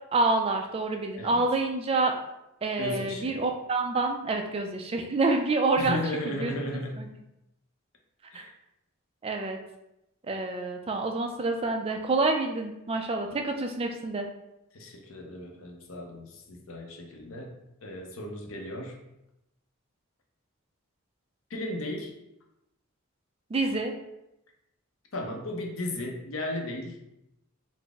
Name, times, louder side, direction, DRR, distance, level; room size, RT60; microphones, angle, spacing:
voice 1, 0.1-2.2 2.6-6.0 6.4-6.5 7.0-7.1 8.3-8.4 9.2-9.6 10.3-14.3 23.5-23.9, right 3 dB, 25° right, 3 dB, 0.3 m, -27 dB
voice 2, 2.8-3.4 5.8-7.1 8.3-8.5 14.7-19.0 21.5-22.2 25.1-27.0, left 1 dB, 70° left, 1 dB, 0.6 m, -35 dB
3.9 x 2.0 x 3.4 m, 0.87 s
head